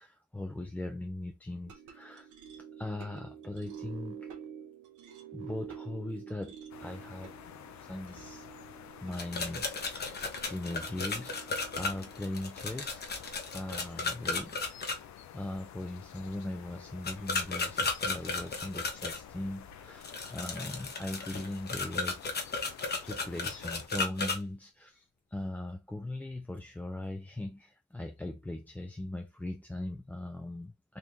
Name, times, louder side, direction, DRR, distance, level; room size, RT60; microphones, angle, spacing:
voice 1, 0.0-2.3 2.8-4.3 5.3-8.5 9.0-10.2 10.5-13.2 13.5-22.7 23.0-31.0, left 1 dB, 5° left, 0.4 m, -40 dB
sound 1, 1.7-14.1, right 8 dB, 80° right, 1.1 m, -49 dB
sound 2, 6.7-23.9, left 9 dB, 70° left, 0.6 m, -50 dB
sound 3, 9.1-15.0 17.0-19.2 20.0-24.4, left 3 dB, 35° left, 0.9 m, -34 dB
3.7 x 2.5 x 3.0 m
cardioid pair, 90°, 30 cm